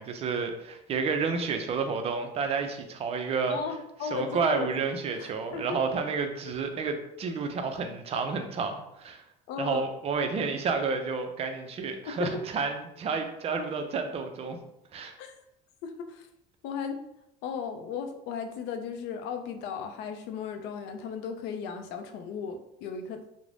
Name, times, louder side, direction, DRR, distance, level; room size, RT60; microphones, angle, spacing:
voice 1, 0.0-3.6 4.1-9.2 9.6-14.6 14.9-15.1, right 5 dB, 35° right, 6 dB, 0.4 m, -30 dB
voice 2, 3.5-4.9 5.2-5.8 9.5-9.8 12.1-12.4 15.2-15.3 15.8-16.3 16.6-17.0 17.4-23.2, left 6 dB, 75° left, 6 dB, 0.4 m, -36 dB
2.5 x 2.0 x 3.2 m, 0.83 s
cardioid pair, 115°, 18 cm